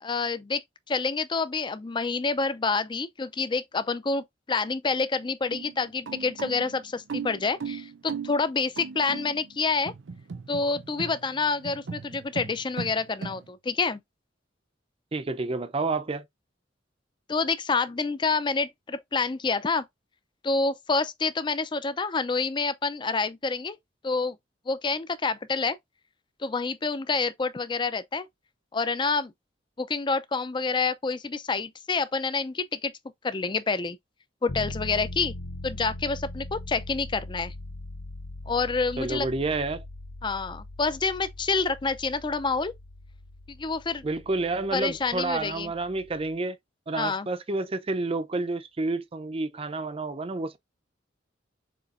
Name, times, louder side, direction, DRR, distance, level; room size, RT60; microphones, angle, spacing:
voice 1, 0.0-9.9 10.5-14.0 17.3-19.8 20.4-23.8 24.0-24.4 24.7-25.8 26.4-28.3 28.7-29.3 29.8-32.9 33.2-34.0 34.4-35.3 35.6-37.5 38.5-39.3 40.2-42.7 43.5-44.1 44.7-45.7 46.9-47.3, left 4 dB, 25° left, 0.4 m, -28 dB
sound 1, 5.5-13.5, right 5 dB, 80° right, 0.6 m, -38 dB
voice 2, 15.1-16.2 39.0-39.8 44.0-46.6 46.9-50.6, right 3 dB, 30° right, 0.5 m, -29 dB
sound 2, 34.5-46.3, left 1 dB, 70° left, 0.7 m, -41 dB
6.8 x 2.9 x 2.5 m
head